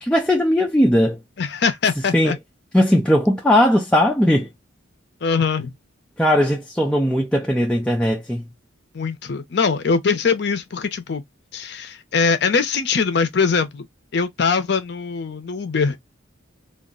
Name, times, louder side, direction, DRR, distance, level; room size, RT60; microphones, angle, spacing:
voice 1, 0.0-1.2 2.1-2.3 2.7-4.5 6.2-8.5, equal, 5° left, 0.3 m, -18 dB
voice 2, 1.4-2.4 5.2-5.7 8.9-11.2 11.5-13.9 14.1-16.0, left 5 dB, 55° left, 0.5 m, -22 dB
2.3 x 2.0 x 3.6 m
head